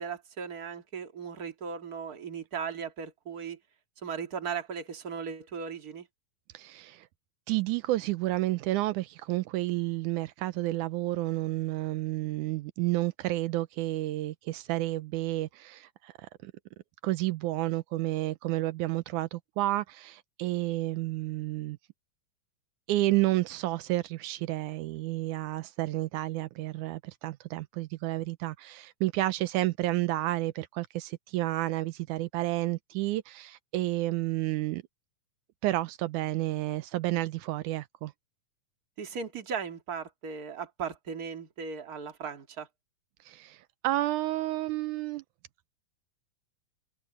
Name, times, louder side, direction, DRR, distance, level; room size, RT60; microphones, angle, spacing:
voice 1, 0.0-3.6 4.0-6.1 39.0-42.7, right 6 dB, 35° right, 2.3 m, -37 dB
voice 2, 6.5-7.1 7.5-16.5 17.0-21.8 22.9-34.8 35.6-38.1 43.3-43.6 43.8-45.2, right 17 dB, 85° right, 2.2 m, -30 dB
omnidirectional pair, 3.5 m